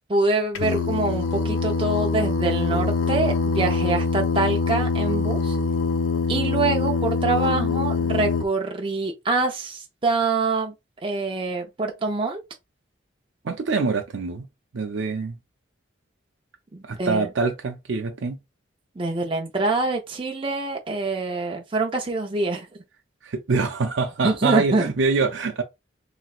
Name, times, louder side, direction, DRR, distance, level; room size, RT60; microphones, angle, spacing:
voice 1, 0.1-5.6 6.3-10.7 11.0-12.4 16.7-17.3 19.0-22.7 24.2-24.9, right 3 dB, 25° right, 0.5 m, -25 dB
Singing, 0.5-8.4, left 4 dB, 85° left, 0.5 m, -24 dB
voice 2, 13.4-14.5 14.7-15.4 16.8-18.4 23.2-25.6, right 4 dB, 75° right, 0.5 m, -25 dB
3.2 x 3.0 x 2.4 m
head